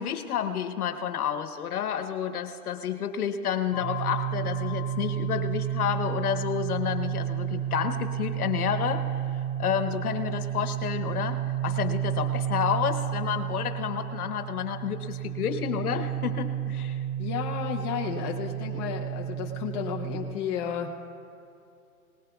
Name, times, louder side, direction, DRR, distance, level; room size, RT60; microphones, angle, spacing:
voice 1, 0.0-9.1 9.6-17.0, left 9 dB, 70° left, 8 dB, 1.2 m, -30 dB
sound 1, 3.7-20.2, right 10 dB, 15° right, 3.0 m, -31 dB
voice 2, 17.2-21.1, left 8 dB, 20° left, -1 dB, 0.7 m, -33 dB
20.0 x 19.5 x 2.3 m, 2.5 s
hypercardioid pair, 160°, 45 cm